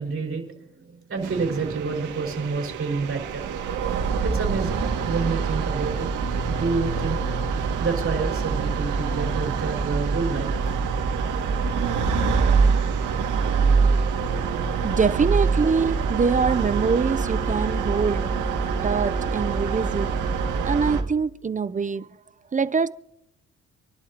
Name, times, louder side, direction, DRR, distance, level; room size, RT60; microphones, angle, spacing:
voice 1, 0.0-3.5 4.2-6.1 6.5-7.2 7.8-10.6, right 4 dB, 45° right, 5.0 m, -28 dB
sound 1, 1.2-21.0, right 5 dB, 85° right, 2.1 m, -25 dB
voice 2, 14.8-18.4 18.8-20.1 20.6-22.1 22.5-22.9, right 5 dB, 25° right, 0.6 m, -24 dB
27.5 x 11.5 x 2.9 m
cardioid pair, 90°, 30 cm